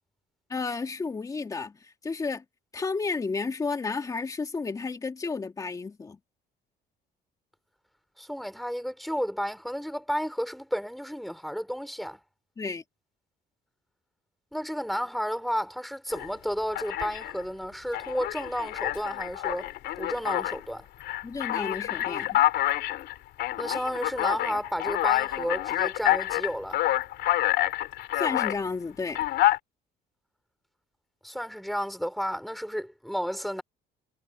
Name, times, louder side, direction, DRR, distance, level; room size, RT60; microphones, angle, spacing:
voice 1, 0.5-2.4 2.7-6.2 12.6-12.8 21.2-22.4 28.1-29.2, left 4 dB, 20° left, 2.4 m, -32 dB
voice 2, 8.2-12.2 14.5-19.7 20.0-20.9 23.6-26.8 31.2-33.6, equal, ahead, 3.3 m, -32 dB
Alarm, 16.1-16.3 16.7-17.4 17.9-20.6 21.0-28.6 29.1-29.6, left 15 dB, 75° left, 3.1 m, -27 dB
cardioid pair, 155°, 18 cm